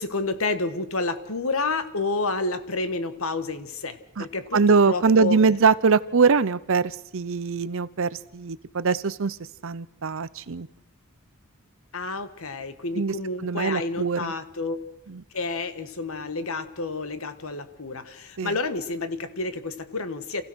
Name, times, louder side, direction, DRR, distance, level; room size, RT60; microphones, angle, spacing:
voice 1, 0.0-5.4 11.9-14.8 15.3-20.4, left 3 dB, 65° left, 11 dB, 1.4 m, -30 dB
voice 2, 4.5-9.4 9.6-10.7 12.9-13.1 13.4-14.3 15.1-15.2 18.4-18.5, right 5 dB, 60° right, 17 dB, 0.7 m, -22 dB
27.5 x 15.5 x 6.3 m, 0.85 s
head